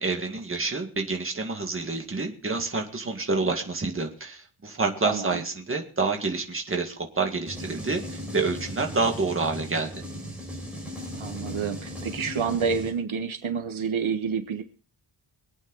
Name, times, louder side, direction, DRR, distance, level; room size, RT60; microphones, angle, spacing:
voice 1, 0.0-10.0, right 3 dB, 25° right, 3 dB, 1.9 m, -28 dB
voice 2, 5.0-5.4 11.2-14.6, right 6 dB, 75° right, 7 dB, 1.4 m, -28 dB
sound 1, 7.5-12.9, equal, ahead, 5.2 m, -37 dB
24.0 x 9.1 x 4.0 m, 0.40 s
wide cardioid pair, 175°, 49 cm